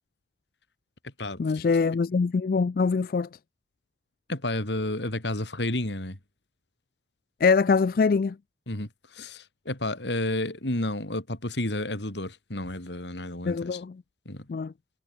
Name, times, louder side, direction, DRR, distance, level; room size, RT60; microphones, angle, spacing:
voice 1, 1.4-3.3 7.4-8.4 13.5-14.0 14.5-14.7, left 5 dB, 50° left, 0.3 m, -23 dB
voice 2, 4.3-6.2 8.7-13.8 14.3-14.5, left 1 dB, 80° left, 3.5 m, -31 dB
head